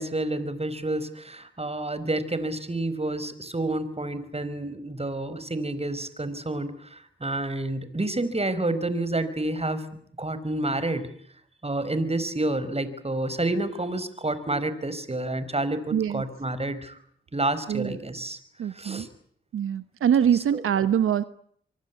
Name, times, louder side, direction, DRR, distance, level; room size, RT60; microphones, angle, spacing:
voice 1, 0.0-9.9 10.2-11.1 11.6-17.0 17.3-18.4 18.7-19.1 20.5-20.6, right 2 dB, 30° right, 14 dB, 5.3 m, -29 dB
voice 2, 15.9-16.2 17.7-18.0 18.6-19.1 19.5-21.2, right 9 dB, 85° right, 13 dB, 1.0 m, -24 dB
25.0 x 24.0 x 8.5 m, 0.64 s
cardioid pair, 45°, 21 cm